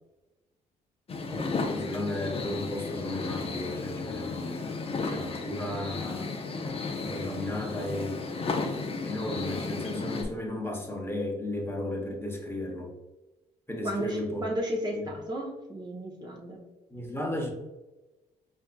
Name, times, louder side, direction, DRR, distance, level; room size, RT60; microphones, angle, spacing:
sound 1, 1.1-10.2, left 4 dB, 30° left, 0.5 m, -34 dB
voice 1, 1.7-6.3 7.0-8.2 9.0-12.9 13.7-14.4 15.0-15.1 16.9-17.5, left 1 dB, 15° left, 0 dB, 1.0 m, -34 dB
voice 2, 13.8-16.6, equal, 20° right, -2 dB, 0.8 m, -34 dB
4.4 x 2.6 x 2.2 m, 1.1 s
hypercardioid pair, 50°, 18 cm